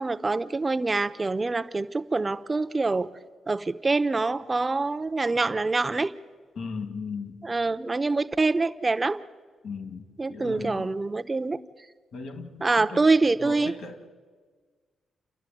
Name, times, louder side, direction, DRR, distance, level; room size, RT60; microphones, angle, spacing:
voice 1, 0.0-3.1 3.5-6.1 7.4-9.2 10.2-11.6 12.6-13.7, right 3 dB, 25° right, 11 dB, 0.8 m, -25 dB
voice 2, 6.5-7.4 9.6-10.9 12.1-14.0, left 4 dB, 70° left, 7 dB, 2.6 m, -37 dB
29.0 x 11.5 x 9.2 m, 1.5 s
cardioid pair, 95°, 0 cm